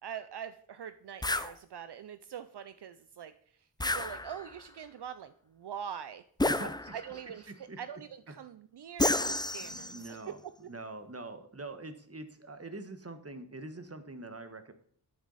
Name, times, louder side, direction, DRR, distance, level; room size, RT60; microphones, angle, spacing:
voice 1, 0.0-3.3 3.6-6.2 6.9-10.3 10.6-10.7, right 8 dB, 75° right, 12 dB, 0.6 m, -44 dB
sound 1, 1.2-1.5 3.8-4.6 6.4-7.2 9.0-10.1, left 2 dB, 10° left, 0.5 m, -31 dB
voice 2, 6.4-7.2 7.7-7.8 9.6-10.4 10.7-14.7, right 2 dB, 35° right, 9 dB, 1.5 m, -44 dB
11.0 x 9.6 x 4.1 m, 0.62 s
cardioid pair, 50°, 41 cm